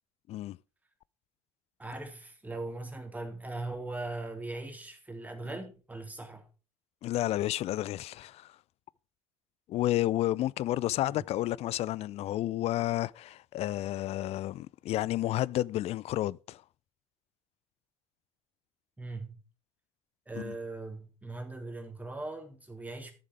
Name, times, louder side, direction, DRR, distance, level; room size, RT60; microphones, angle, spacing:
voice 1, 1.8-6.5 11.1-11.3 19.0-19.4 20.3-23.1, right 2 dB, 10° right, 3.3 m, -40 dB
voice 2, 7.0-8.6 9.7-16.6 20.3-20.5, left 14 dB, 40° left, 0.4 m, -31 dB
14.0 x 7.3 x 4.6 m
figure-of-eight pair, 60°, 16 cm